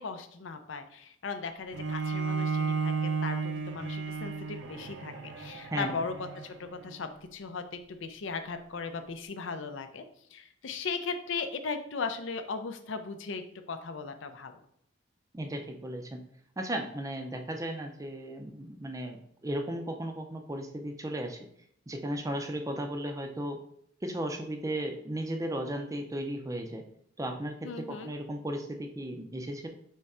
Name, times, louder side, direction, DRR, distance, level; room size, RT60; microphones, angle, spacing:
voice 1, 0.0-10.0 10.3-14.6 27.6-28.1, left 4 dB, 70° left, 8 dB, 0.5 m, -37 dB
Bowed string instrument, 1.7-7.0, right 5 dB, 70° right, 0.5 m, -33 dB
voice 2, 5.7-6.0 15.3-16.2 16.6-21.4 21.9-23.6 24.0-26.8 27.2-29.7, right 1 dB, 15° right, 5 dB, 0.5 m, -35 dB
3.6 x 3.3 x 4.2 m, 0.69 s
head